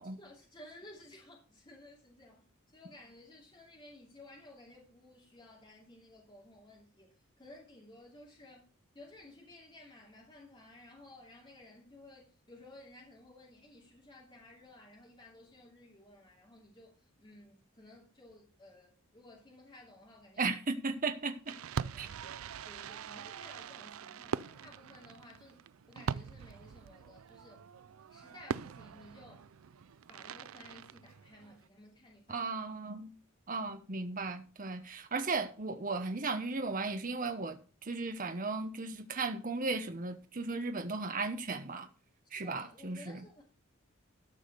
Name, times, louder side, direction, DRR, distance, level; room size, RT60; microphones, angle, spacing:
voice 1, 0.0-8.6 8.9-20.4 21.8-25.6 25.9-27.6 28.1-29.5 30.1-32.5 42.2-43.4, left 1 dB, 20° left, 2.7 m, -56 dB
voice 2, 20.4-21.5 22.0-22.1 32.3-33.1 33.5-41.9 42.3-43.2, right 3 dB, 40° right, 1.0 m, -36 dB
Fireworks, 21.5-31.7, right 7 dB, 75° right, 0.4 m, -42 dB
13.0 x 5.0 x 6.8 m
head